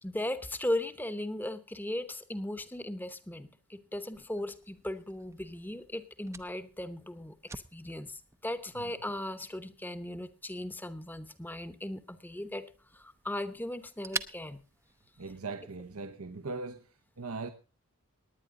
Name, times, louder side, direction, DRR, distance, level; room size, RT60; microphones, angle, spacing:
voice 1, 0.0-7.3 7.7-12.7 12.9-14.6, left 1 dB, 10° left, 0.9 m, -37 dB
Fire, 4.1-15.6, right 4 dB, 15° right, 0.5 m, -47 dB
voice 2, 15.2-16.8 17.2-17.5, right 3 dB, 80° right, 0.9 m, -39 dB
19.0 x 9.8 x 3.8 m
head